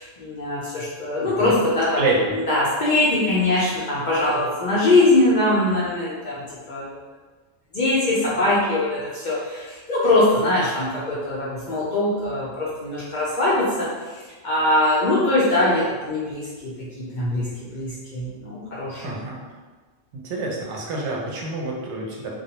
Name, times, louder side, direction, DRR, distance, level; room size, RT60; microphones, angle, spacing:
voice 1, 0.0-2.0 2.5-6.9 7.7-19.2, left 2 dB, 60° left, -8 dB, 0.5 m, -22 dB
voice 2, 1.2-1.6 2.0-2.3 19.0-19.4 20.1-22.3, right 2 dB, 70° right, -2 dB, 0.8 m, -27 dB
2.3 x 2.0 x 2.8 m, 1.3 s
omnidirectional pair, 1.3 m